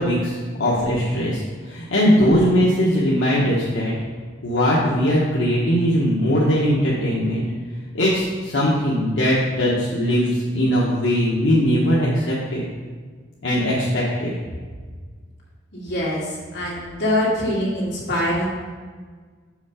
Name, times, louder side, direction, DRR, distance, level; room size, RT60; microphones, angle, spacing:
voice 1, 0.0-3.9 4.4-7.4 7.9-12.6 13.4-14.3, equal, 90° left, -6 dB, 1.1 m, -20 dB
voice 2, 15.7-16.3 16.5-18.5, left 1 dB, 70° left, -5 dB, 2.3 m, -23 dB
6.5 x 5.2 x 4.9 m, 1.5 s
head